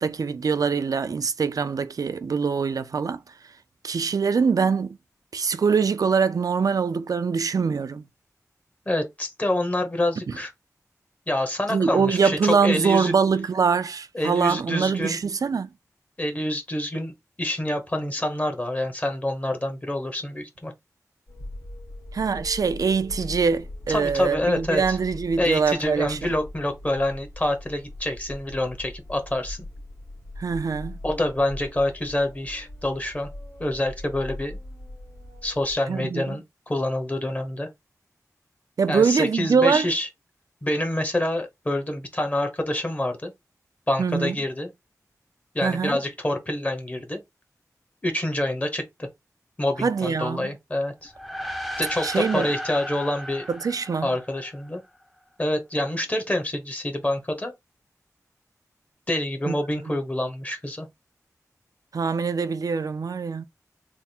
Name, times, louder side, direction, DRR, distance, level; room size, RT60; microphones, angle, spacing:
voice 1, 0.0-3.2 3.8-5.0 5.3-8.0 11.7-15.7 22.1-26.3 30.4-31.0 35.9-36.4 38.8-39.9 44.0-44.4 45.6-46.0 49.8-50.5 52.0-52.5 53.5-54.1 59.5-59.6 59.9-60.0 61.9-63.4, right 5 dB, 75° right, 0.4 m, -23 dB
voice 2, 8.9-10.5 11.3-13.1 14.1-15.2 16.2-17.1 17.4-20.7 23.9-25.0 25.4-29.6 31.0-33.3 33.6-34.6 35.4-37.7 38.9-40.1 40.6-43.3 43.9-44.7 45.5-47.2 48.0-49.1 49.6-51.1 51.8-52.1 52.3-53.5 54.0-54.8 55.4-57.5 59.1-60.9, left 1 dB, 25° left, 1.0 m, -27 dB
sound 1, 21.3-35.7, left 1 dB, 80° left, 1.7 m, -40 dB
sound 2, 51.1-54.8, equal, ahead, 0.6 m, -35 dB
3.4 x 2.1 x 4.2 m
wide cardioid pair, 90°, 6 cm